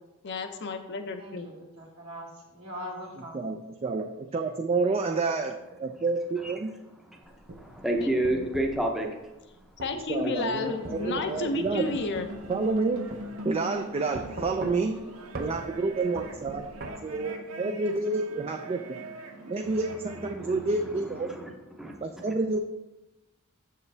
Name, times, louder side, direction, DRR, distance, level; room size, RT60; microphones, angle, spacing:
voice 1, 0.2-1.5 8.0-8.5 9.8-12.3, left 3 dB, 55° left, 7 dB, 0.6 m, -32 dB
voice 2, 1.2-3.5 10.5-11.3, equal, 70° right, -2 dB, 1.9 m, -42 dB
voice 3, 3.3-6.8 10.1-11.9 12.5-13.1 13.4-15.0 15.4-16.7 17.0-19.0 19.5-21.3 22.0-22.6, right 3 dB, 30° right, 4 dB, 0.3 m, -29 dB
voice 4, 7.1-9.1 20.3-22.3, right 1 dB, ahead, 0 dB, 0.7 m, -31 dB
sound 1, 7.2-8.8 9.8-10.0 10.8-12.8 13.1-13.2 14.1-15.0 15.3-15.5 16.2-16.9, right 2 dB, 45° right, 0.7 m, -40 dB
sound 2, 10.6-20.4, right 1 dB, 85° right, 0.8 m, -43 dB
7.0 x 6.5 x 3.3 m, 1.0 s
head